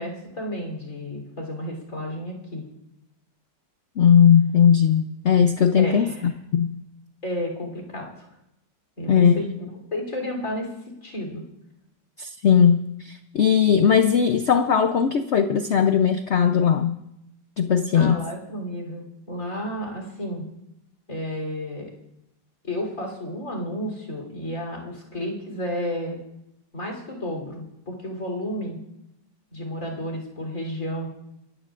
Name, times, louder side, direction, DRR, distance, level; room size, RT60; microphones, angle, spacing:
voice 1, 0.0-2.6 5.8-6.4 7.2-8.1 9.0-10.7 11.0-11.4 17.9-20.5 21.1-21.9 22.6-26.2 26.7-28.8 29.5-31.1, equal, 45° left, 0 dB, 3.9 m, -32 dB
voice 2, 4.0-6.8 9.1-9.4 12.2-17.0 17.6-18.2, left 7 dB, 90° left, 8 dB, 0.6 m, -19 dB
28.5 x 14.0 x 2.5 m, 0.85 s
omnidirectional pair, 2.0 m